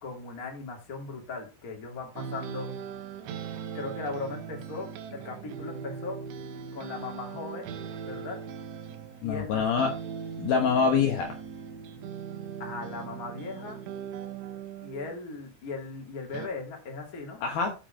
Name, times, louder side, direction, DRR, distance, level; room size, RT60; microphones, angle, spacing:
voice 1, 0.0-2.7 3.7-6.2 6.7-7.8 8.0-8.4 9.2-9.6 12.6-13.8 14.8-17.4, left 3 dB, 25° left, 0 dB, 2.0 m, -38 dB
sound 1, 2.2-9.4 9.8-15.2 16.3-16.5, right 7 dB, 90° right, 3.3 m, -39 dB
voice 2, 9.2-9.9 10.4-11.4 17.4-17.7, left 6 dB, 70° left, 3 dB, 2.5 m, -25 dB
7.5 x 6.7 x 5.0 m, 0.31 s
omnidirectional pair, 5.2 m